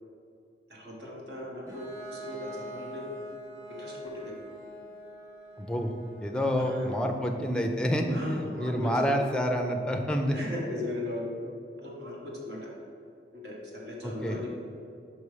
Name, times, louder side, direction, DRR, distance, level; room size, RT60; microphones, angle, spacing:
voice 1, 0.7-3.1 3.7-4.3 6.5-6.9 8.1-9.2 10.3-11.2 11.8-12.7 13.4-14.6, left 1 dB, 70° right, -3 dB, 1.3 m, -38 dB
Bowed string instrument, 1.7-7.3, equal, 20° right, 1.1 m, -45 dB
voice 2, 5.6-5.9 6.2-10.4 14.0-14.5, equal, 5° left, 3 dB, 0.5 m, -28 dB
5.5 x 5.4 x 4.8 m, 2.6 s
head